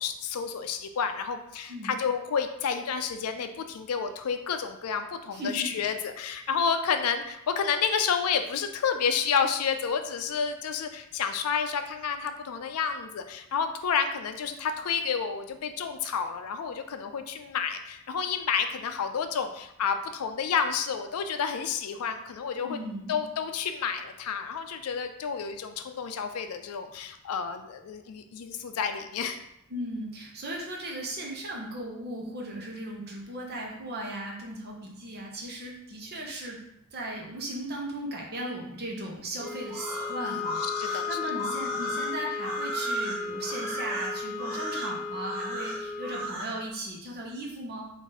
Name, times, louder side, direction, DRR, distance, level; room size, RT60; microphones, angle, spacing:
voice 1, 0.0-22.8 23.1-29.4 40.2-41.2, left 6 dB, 85° left, 8 dB, 0.4 m, -30 dB
voice 2, 5.3-5.8 22.6-23.2 29.7-36.6 36.9-47.9, right 1 dB, 50° right, -1 dB, 0.9 m, -37 dB
sound 1, 39.4-46.3, left 6 dB, 40° left, 1.4 m, -35 dB
sound 2, 39.7-46.5, right 2 dB, 65° right, 1.1 m, -35 dB
3.7 x 2.6 x 4.0 m, 0.80 s
head